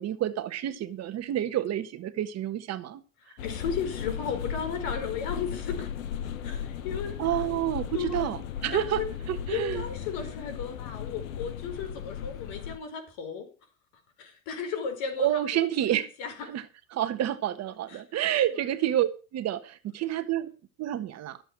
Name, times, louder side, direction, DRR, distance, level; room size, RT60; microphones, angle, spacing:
voice 1, 0.0-3.4 7.2-9.8 15.2-16.1 16.5-16.6 16.9-20.5 20.8-21.4, right 12 dB, 40° right, 1.3 m, -29 dB
voice 2, 3.3-5.9 6.4-7.2 7.9-8.4 8.7-9.1 9.5-13.5 14.2-15.7 16.2-16.3 17.9-18.0 18.5-18.6, left 6 dB, 60° left, 4.8 m, -35 dB
sound 1, 3.4-12.8, left 9 dB, 80° left, 1.4 m, -36 dB
13.5 x 7.9 x 6.2 m
hypercardioid pair, 100°, 40 cm